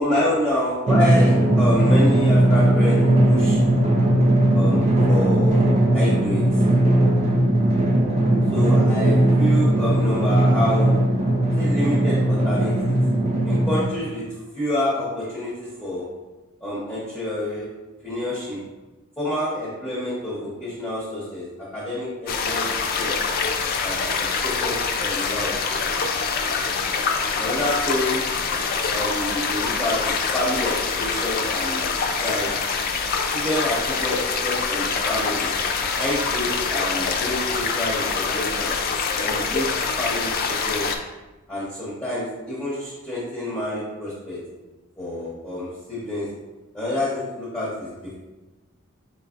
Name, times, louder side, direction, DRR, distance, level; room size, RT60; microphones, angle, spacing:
voice 1, 0.0-3.0 3.2-3.6 4.5-5.7 5.9-6.6 8.5-11.0 11.6-13.0 13.4-14.2 14.5-16.0 16.6-17.7 18.0-18.6 19.2-21.5 21.7-23.1 23.8-24.8 25.0-25.5 27.4-28.2 28.9-31.8 32.2-32.5 33.3-34.1 34.4-35.5 36.0-38.7 39.2-39.7 40.0-40.9 41.5-44.4 45.0-46.3 46.7-48.1, left 1 dB, 5° left, -11 dB, 0.8 m, -28 dB
Drum, 0.9-13.8, right 1 dB, 30° right, 0.5 m, -18 dB
sound 1, 22.3-41.0, left 5 dB, 45° left, 0.4 m, -25 dB
4.3 x 3.8 x 2.4 m, 1.1 s
head